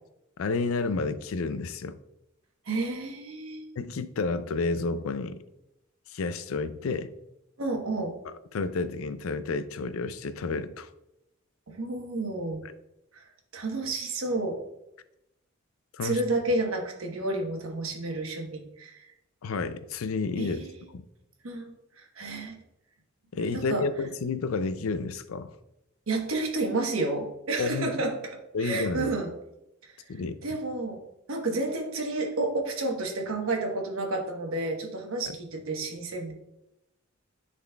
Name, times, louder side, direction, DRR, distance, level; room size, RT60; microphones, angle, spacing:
voice 1, 0.4-2.0 3.8-5.4 6.1-7.1 8.3-10.9 12.6-12.7 15.9-16.2 19.4-21.0 23.3-25.5 27.6-28.0 28.5-29.1 30.1-30.4 35.3-35.4, left 4 dB, 90° left, 13 dB, 0.4 m, -31 dB
voice 2, 2.7-3.7 7.6-8.2 11.7-12.6 13.1-13.3 13.5-14.6 16.0-19.0 20.4-20.8 21.4-22.5 23.5-23.9 26.1-28.3 28.6-29.3 29.8-30.0 30.4-31.0 31.3-36.3, right 2 dB, 85° right, 2 dB, 1.1 m, -30 dB
10.5 x 4.1 x 2.3 m, 0.87 s
head